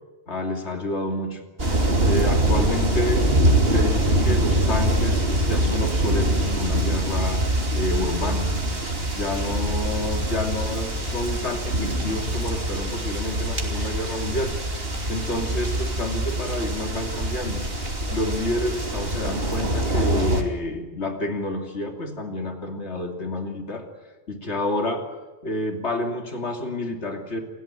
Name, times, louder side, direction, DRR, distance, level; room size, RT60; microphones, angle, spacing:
voice 1, 0.3-1.4 2.1-3.3 3.7-7.4 7.7-8.5 9.1-14.8 15.1-17.6 18.1-23.9 24.3-25.0 25.4-27.4, left 1 dB, 75° left, 4 dB, 3.1 m, -29 dB
sound 1, 1.6-20.4, right 1 dB, 60° right, 3.2 m, -24 dB
28.5 x 16.0 x 8.9 m, 1.3 s
omnidirectional pair, 1.1 m